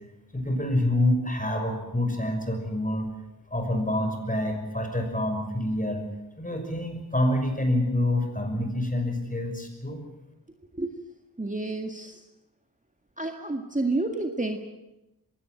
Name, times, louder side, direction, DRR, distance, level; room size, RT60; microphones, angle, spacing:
voice 1, 0.3-3.1 3.5-6.1 6.4-10.0, left 1 dB, 20° left, 5 dB, 6.0 m, -27 dB
voice 2, 11.4-12.2 13.2-14.6, right 2 dB, 20° right, 4 dB, 1.9 m, -29 dB
22.0 x 17.0 x 9.1 m, 0.95 s
wide cardioid pair, 65°, 39 cm